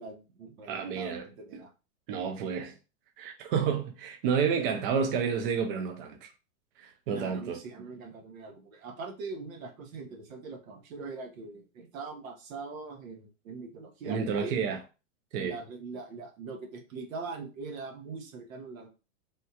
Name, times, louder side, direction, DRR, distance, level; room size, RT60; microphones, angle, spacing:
voice 1, 0.0-1.7 7.1-14.6 15.4-18.9, right 4 dB, 85° right, 1.0 m, -42 dB
voice 2, 0.7-1.2 2.1-2.7 3.2-6.3 6.8-7.6 14.1-14.8 15.3-15.6, right 6 dB, 45° right, 0.5 m, -30 dB
3.4 x 2.3 x 2.8 m
supercardioid pair, 155°, 40 cm